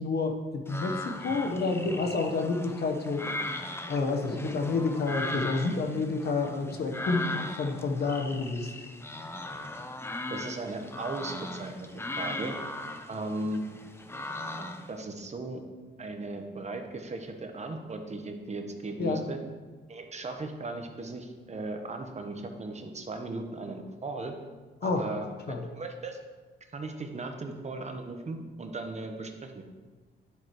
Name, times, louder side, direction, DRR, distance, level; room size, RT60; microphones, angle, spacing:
voice 1, 0.0-3.2 3.9-8.7 19.0-19.3 24.8-25.0 25.5-25.6, left 3 dB, 55° left, 4 dB, 1.1 m, -29 dB
sound 1, 0.7-15.0, left 2 dB, 10° left, 0.7 m, -38 dB
voice 2, 10.3-12.5 13.1-13.6 14.5-15.6 16.0-19.4 19.9-24.3 24.8-26.2 26.7-29.6, right 2 dB, 35° right, 4 dB, 1.1 m, -37 dB
10.5 x 7.8 x 3.1 m, 1.4 s
cardioid pair, 85°, 20 cm